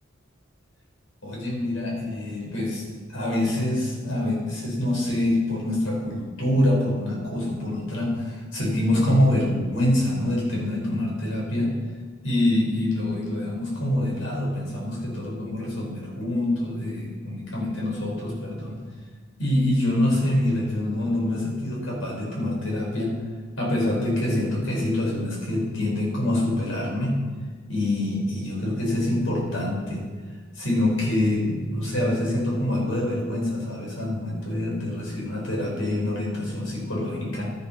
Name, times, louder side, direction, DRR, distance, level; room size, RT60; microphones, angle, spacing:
voice 1, 1.2-2.8 3.1-11.7 12.2-18.8 19.4-23.1 23.6-27.2 27.7-30.0 30.6-37.5, left 1 dB, 85° left, -2 dB, 5.4 m, -25 dB
12.5 x 11.0 x 6.0 m, 1.5 s
head